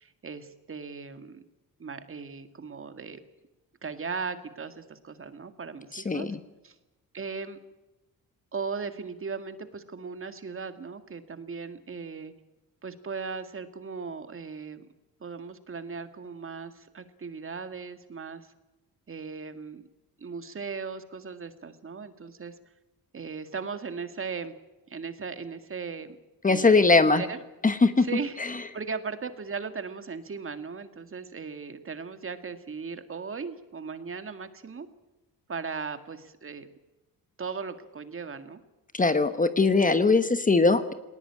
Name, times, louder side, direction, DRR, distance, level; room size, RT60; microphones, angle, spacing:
voice 1, 0.0-1.4 1.8-3.2 3.8-6.3 6.6-6.8 7.1-7.6 8.5-12.3 12.8-14.9 15.2-18.5 19.1-19.8 20.2-22.6 23.1-24.5 24.9-26.2 26.5-27.4 28.0-28.4 28.7-34.9 35.5-36.7 37.4-38.6, right 5 dB, 35° right, 9 dB, 1.9 m, -37 dB
voice 2, 5.9-6.4 26.4-27.2 27.6-28.1 38.9-40.9, left 3 dB, 20° left, 10 dB, 1.2 m, -21 dB
19.5 x 19.0 x 8.7 m, 1.0 s
cardioid pair, 105°, 36 cm